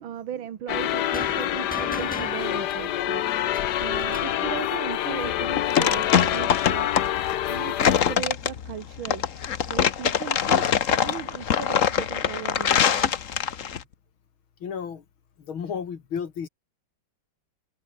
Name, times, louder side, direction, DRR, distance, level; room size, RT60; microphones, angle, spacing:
voice 1, 0.0-7.1 7.5-9.3 9.7-13.1, right 9 dB, 75° right, 2.2 m, -37 dB
sound 1, 0.7-8.2, left 12 dB, 60° left, 1.3 m, -27 dB
sound 2, 1.1-4.5, equal, 5° left, 3.9 m, -40 dB
sound 3, 5.2-13.8, left 8 dB, 45° left, 1.2 m, -23 dB
voice 2, 14.6-15.0 15.5-16.5, left 7 dB, 80° left, 2.9 m, -32 dB
omnidirectional pair, 2.2 m